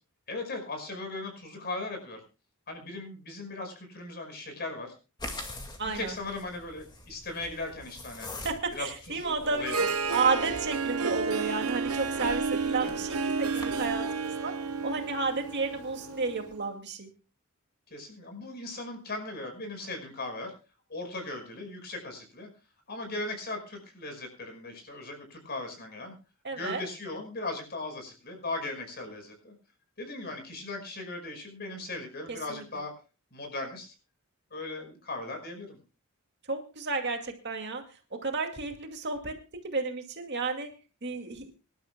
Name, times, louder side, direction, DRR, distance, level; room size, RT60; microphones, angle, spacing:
voice 1, 0.3-2.2 2.7-4.9 5.8-8.3 8.7-9.9 12.8-13.0 17.9-20.5 20.9-22.5 22.9-26.1 26.5-29.5 30.0-32.9 33.3-33.9 34.5-35.8, left 2 dB, 45° left, 5 dB, 5.4 m, -38 dB
sound 1, 5.2-14.0, left 2 dB, 20° left, 2.1 m, -45 dB
voice 2, 5.8-6.1 8.3-9.8 10.1-14.5 14.8-17.1 26.4-26.8 32.3-32.6 36.5-39.4 39.6-40.7 41.0-41.5, right 4 dB, 50° right, 4 dB, 2.3 m, -32 dB
Harp, 9.4-16.5, right 4 dB, 85° right, 1.1 m, -31 dB
25.5 x 12.0 x 2.3 m, 0.31 s
head